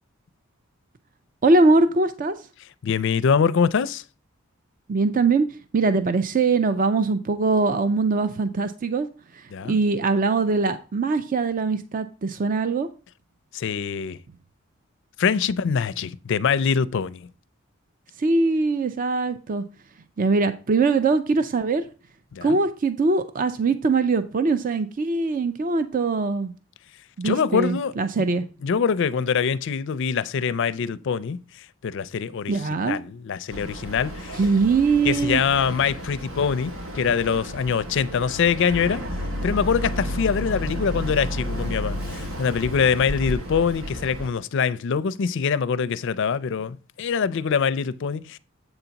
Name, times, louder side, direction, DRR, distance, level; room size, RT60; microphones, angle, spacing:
voice 1, 1.4-2.3 4.9-5.5 5.7-9.1 9.7-12.9 18.2-19.6 20.2-21.9 22.4-26.5 27.2-28.4 32.5-33.0 34.3-35.4, right 3 dB, 40° right, 0.5 m, -22 dB
voice 2, 2.8-4.0 9.5-9.8 13.5-14.2 15.2-17.3 22.3-22.6 27.2-28.3 28.6-34.4 35.0-39.0 39.4-48.4, left 6 dB, 60° left, 0.4 m, -24 dB
Boat Water vehicle, 33.5-44.3, equal, 85° right, 1.9 m, -32 dB
8.0 x 3.9 x 5.7 m
head